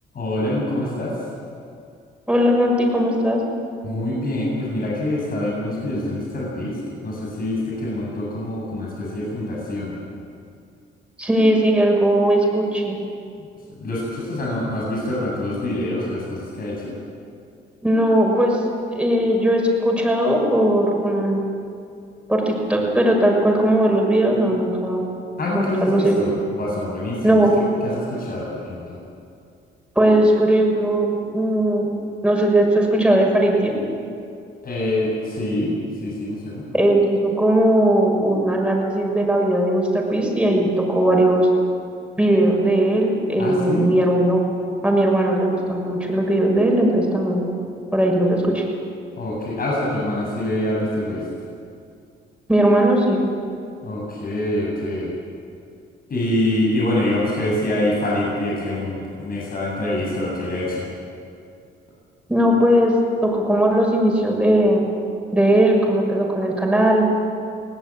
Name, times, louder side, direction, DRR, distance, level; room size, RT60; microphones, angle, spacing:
voice 1, 0.1-1.2 3.8-9.9 13.8-16.9 25.4-29.0 34.6-36.6 43.4-43.9 49.2-51.2 53.8-55.1 56.1-60.9, left 1 dB, 50° left, -4 dB, 7.9 m, -25 dB
voice 2, 2.3-3.4 11.2-13.0 17.8-21.4 22.3-25.0 25.5-26.1 27.2-27.5 29.9-31.9 32.2-33.8 36.7-41.5 42.2-44.4 44.8-47.5 47.9-48.6 52.5-53.2 62.3-63.0 63.2-64.8 65.3-67.1, right 1 dB, 5° right, -1 dB, 6.6 m, -18 dB
21.5 x 17.5 x 9.1 m, 2.5 s
cardioid pair, 90°, 20 cm